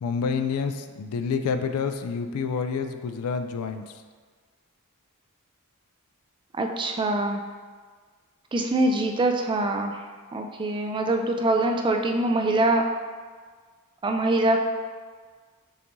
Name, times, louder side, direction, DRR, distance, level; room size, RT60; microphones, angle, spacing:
voice 1, 0.0-3.8, left 5 dB, 70° left, 8 dB, 0.3 m, -28 dB
voice 2, 6.6-7.4 8.5-10.0 10.3-12.8 14.0-14.6, right 2 dB, 20° right, 4 dB, 0.3 m, -24 dB
6.7 x 2.6 x 3.0 m, 1.6 s
head